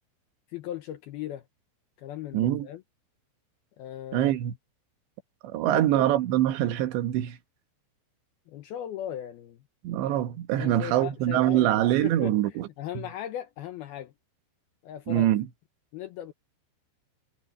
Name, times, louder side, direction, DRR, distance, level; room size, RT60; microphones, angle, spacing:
voice 1, 0.5-1.4 2.0-2.8 3.8-4.3 5.7-6.1 8.5-9.6 10.6-11.8 12.0-14.1 14.8-15.3 15.9-16.3, left 11 dB, 85° left, 2.2 m, -38 dB
voice 2, 2.3-2.7 4.1-4.5 5.4-7.4 9.8-12.7 13.0-13.1 15.1-15.5, right 13 dB, 70° right, 3.1 m, -24 dB
omnidirectional pair, 5.8 m